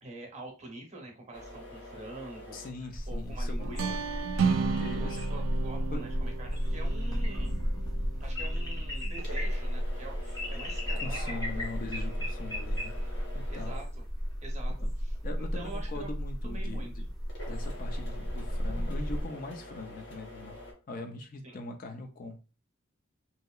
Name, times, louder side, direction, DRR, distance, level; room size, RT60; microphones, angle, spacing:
voice 1, 0.0-3.8 5.3-7.5 8.2-11.7 13.5-14.0 14.4-14.7 15.0-16.1 16.4-16.9 21.4-21.6, right 2 dB, 35° right, 2 dB, 0.8 m, -46 dB
sound 1, 1.3-20.7, left 1 dB, 60° left, 1.0 m, -49 dB
voice 2, 2.5-4.0 4.4-5.4 5.9-6.0 11.0-12.9 13.3-13.7 14.8-14.9 15.2-17.0 17.5-20.6 20.9-22.4, left 2 dB, 45° left, 5 dB, 0.4 m, -41 dB
sound 2, 2.9-19.2, equal, 20° left, 0.7 m, -33 dB
sound 3, 3.6-9.3, right 5 dB, 75° right, 0.3 m, -34 dB
2.9 x 2.8 x 2.3 m, 0.33 s
head